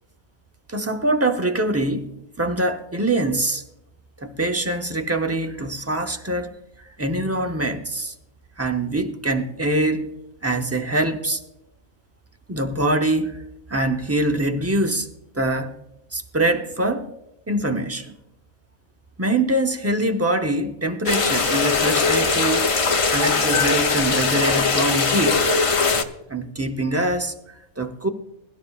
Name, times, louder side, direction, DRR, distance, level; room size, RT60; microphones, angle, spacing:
voice 1, 0.7-2.1 2.4-3.6 4.2-6.5 7.0-8.1 8.6-10.1 10.4-11.4 12.5-13.4 13.7-15.1 15.3-15.7 16.1-17.1 17.5-18.2 19.2-22.7 23.1-25.4 26.3-27.3 27.8-28.1, right 1 dB, 15° right, 0.5 m, -23 dB
sound 1, 21.1-26.0, left 4 dB, 35° left, 0.5 m, -20 dB
22.0 x 12.0 x 2.4 m
omnidirectional pair, 1.5 m